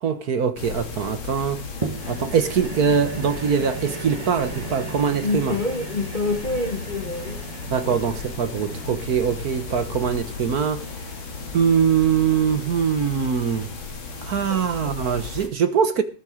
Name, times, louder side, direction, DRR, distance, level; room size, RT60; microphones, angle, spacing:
voice 1, 0.0-1.6 2.1-5.6 7.7-11.1 11.5-13.7 14.2-16.0, right 7 dB, 55° right, 1.5 m, -22 dB
sound 1, 0.6-15.5, left 4 dB, 75° left, 3.1 m, -35 dB
sound 2, 1.8-12.3 12.9-13.0, right 4 dB, 25° right, 0.9 m, -37 dB
voice 2, 5.2-7.4 7.8-8.0 14.5-14.9, left 3 dB, 30° left, 0.9 m, -27 dB
19.5 x 6.8 x 4.9 m
omnidirectional pair, 2.2 m